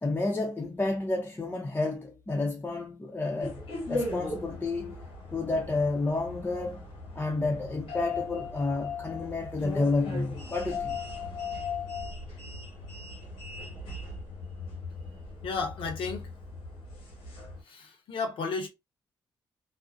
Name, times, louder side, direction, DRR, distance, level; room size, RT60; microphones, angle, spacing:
voice 1, 0.0-3.6 3.9-5.0 5.3-11.0, left 3 dB, 20° left, 0.6 m, -30 dB
sound 1, 3.4-17.6, left 3 dB, 90° left, 1.1 m, -38 dB
voice 2, 15.4-16.3 17.6-18.7, left 4 dB, 70° left, 0.7 m, -33 dB
2.4 x 2.1 x 2.4 m
cardioid pair, 60°, 9 cm